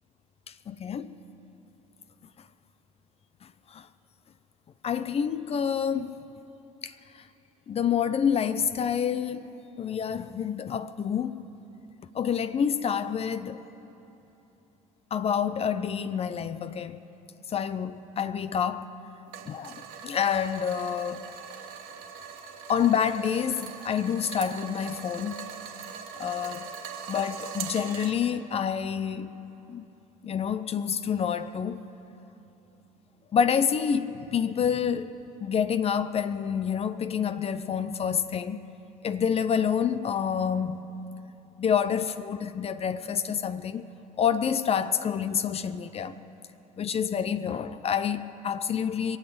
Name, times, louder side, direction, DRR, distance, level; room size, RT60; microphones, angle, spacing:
voice 1, 0.5-1.1 3.4-3.9 4.8-6.2 6.8-7.2 7.7-11.4 12.1-13.6 15.1-17.0 17.5-18.9 19.5-21.3 22.7-25.5 26.2-26.7 27.1-29.3 29.7-29.8 30.2-31.9 33.3-38.6 39.0-40.9 41.6-43.9 44.2-46.2 46.8-49.2, left 7 dB, 35° left, 0.6 m, -28 dB
sound 1, 19.3-28.1, right 7 dB, 60° right, 1.7 m, -41 dB
22.5 x 7.9 x 7.8 m
hypercardioid pair, 70°, 18 cm